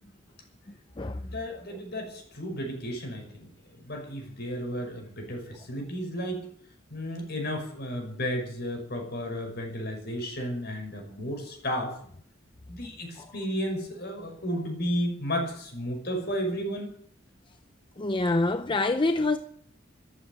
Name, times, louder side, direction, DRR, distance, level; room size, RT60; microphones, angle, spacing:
voice 1, 1.0-6.5 6.9-11.9 12.7-16.9, equal, 55° left, 5.8 m, -33 dB
voice 2, 18.0-19.4, left 2 dB, 25° left, 0.6 m, -25 dB
14.0 x 12.5 x 7.5 m
head